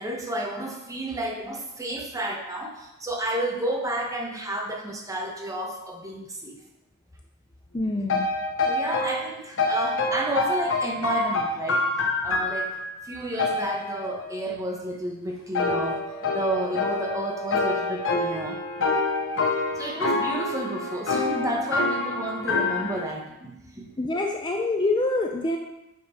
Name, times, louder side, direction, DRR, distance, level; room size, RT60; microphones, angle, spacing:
voice 1, 0.0-6.6 8.7-11.8 12.2-16.0 16.3-18.6 19.8-23.9, right 1 dB, 15° right, 1 dB, 1.1 m, -31 dB
voice 2, 7.7-8.3 24.0-25.6, left 2 dB, 20° left, 2 dB, 0.5 m, -25 dB
sound 1, 8.1-9.3 9.6-13.0 13.4-14.5 15.6-23.1, left 3 dB, 60° left, 0.9 m, -26 dB
8.6 x 5.7 x 4.3 m, 0.92 s
head